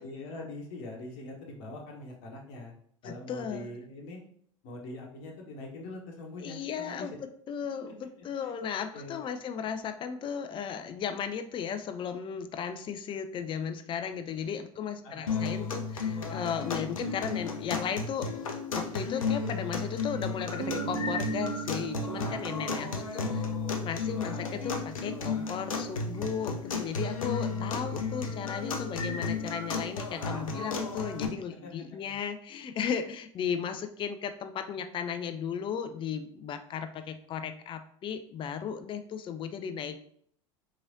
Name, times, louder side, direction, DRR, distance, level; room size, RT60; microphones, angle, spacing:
voice 1, 0.0-2.7 3.0-4.2 4.6-7.1 8.4-8.5 8.9-9.2 15.0-15.3 22.2-23.3 30.3-30.6 31.6-31.7 32.0-32.1, left 2 dB, 55° left, 0 dB, 1.0 m, -43 dB
voice 2, 3.0-3.7 6.4-18.3 18.7-23.5 23.8-40.0, left 7 dB, 30° left, 9 dB, 0.4 m, -35 dB
sound 1, 15.3-31.3, left 4 dB, 80° left, 0.5 m, -33 dB
Guitar, 20.6-25.2, right 10 dB, 65° right, 0.4 m, -39 dB
3.8 x 3.1 x 2.6 m, 0.62 s
figure-of-eight pair, 80°, 17 cm